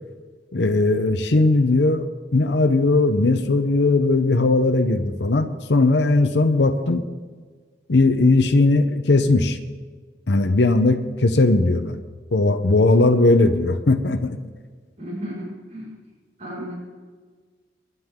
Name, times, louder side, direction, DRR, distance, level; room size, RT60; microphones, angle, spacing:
voice 1, 0.5-2.1 2.3-7.0 7.9-9.6 10.3-12.0 12.3-14.4, left 2 dB, 80° left, 7 dB, 0.8 m, -18 dB
voice 2, 15.0-15.9 16.4-16.7, equal, 40° right, -7 dB, 5.2 m, -33 dB
23.5 x 11.0 x 3.7 m, 1.5 s
head